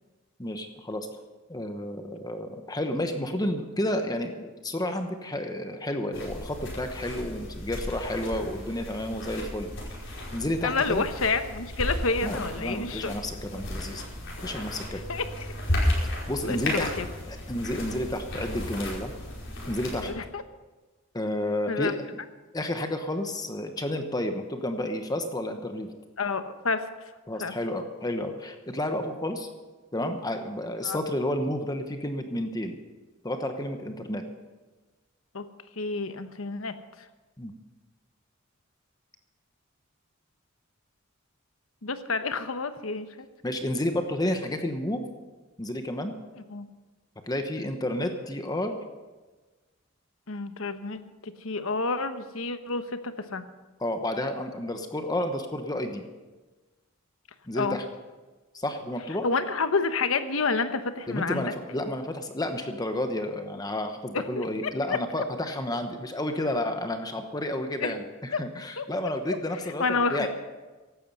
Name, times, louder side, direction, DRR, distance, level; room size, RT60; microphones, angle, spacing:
voice 1, 0.4-1.1 1.5-9.7 10.3-11.1 12.2-14.1 14.4-15.0 16.3-16.9 17.3-19.1 19.7-20.1 21.1-22.1 22.5-25.9 27.3-29.5 29.9-32.8 33.2-34.2 37.4-37.5 43.4-45.0 45.6-46.2 47.3-48.8 53.8-56.0 57.5-57.8 58.5-59.3 61.1-69.8 70.1-70.3, left 1 dB, 20° left, 6 dB, 1.0 m, -31 dB
sound 1, 6.1-20.1, left 1 dB, 65° left, 5.0 m, -34 dB
voice 2, 10.6-13.1 15.1-15.5 16.4-17.1 20.0-20.4 21.7-21.9 26.2-26.9 27.4-27.5 30.8-31.0 35.3-35.4 35.8-36.8 41.8-43.3 46.5-46.7 50.3-53.4 57.5-57.8 59.2-61.5 64.1-65.0 67.8-67.9 68.3-68.4 68.8-68.9 69.8-70.3, left 4 dB, 85° left, 9 dB, 1.1 m, -29 dB
16.0 x 12.0 x 5.5 m, 1.3 s
head